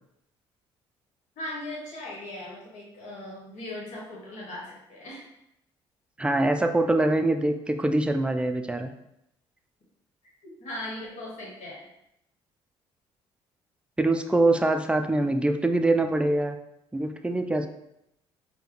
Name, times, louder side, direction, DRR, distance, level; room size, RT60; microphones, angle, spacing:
voice 1, 1.4-5.2 10.6-11.8, left 1 dB, 65° left, -3 dB, 1.3 m, -38 dB
voice 2, 6.2-8.9 14.0-16.6 16.9-17.7, right 2 dB, 10° right, 7 dB, 0.4 m, -24 dB
4.5 x 2.2 x 3.1 m, 0.82 s
hypercardioid pair, 55°, 13 cm